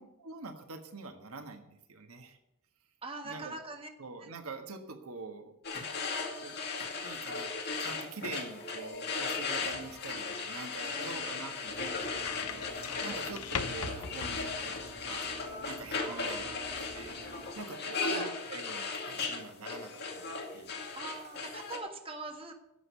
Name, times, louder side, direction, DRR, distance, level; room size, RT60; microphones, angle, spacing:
voice 1, 0.0-2.4 3.2-3.5 4.0-5.5 6.4-6.6 7.0-15.3 15.6-17.2 17.5-20.8, right 3 dB, 70° right, 6 dB, 1.5 m, -45 dB
voice 2, 3.0-3.9 4.2-4.3 10.8-11.3 12.8-13.2 16.0-16.7 18.0-18.3 20.9-22.5, right 3 dB, 25° right, 4 dB, 1.5 m, -43 dB
sound 1, 5.6-21.8, left 4 dB, 50° left, 2.3 m, -37 dB
sound 2, 8.9-15.2, left 6 dB, 85° left, 0.9 m, -43 dB
sound 3, 11.7-17.5, right 1 dB, 90° right, 2.7 m, -51 dB
11.0 x 7.3 x 9.4 m, 0.87 s
head